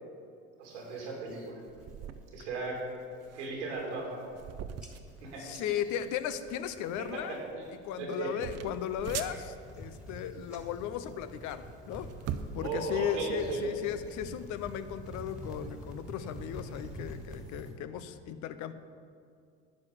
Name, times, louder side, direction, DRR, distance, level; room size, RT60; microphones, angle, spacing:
voice 1, 0.6-1.6 2.3-2.8 3.3-4.2 5.2-5.4 7.1-7.6 8.0-8.3 12.6-13.7, right 3 dB, 85° right, -2 dB, 2.8 m, -36 dB
sound 1, 0.7-1.5 1.9-2.3 2.6-3.0 3.5-3.6 3.8-4.5 4.8-7.4 7.6-8.1 8.7-17.7, left 1 dB, 5° right, 1.8 m, -47 dB
sound 2, 1.7-17.4, right 8 dB, 45° right, 0.7 m, -45 dB
voice 2, 5.4-7.4 7.8-12.1 12.5-18.7, left 9 dB, 60° left, 12 dB, 0.7 m, -36 dB
11.5 x 4.9 x 7.2 m, 2.3 s
hypercardioid pair, 70°, 34 cm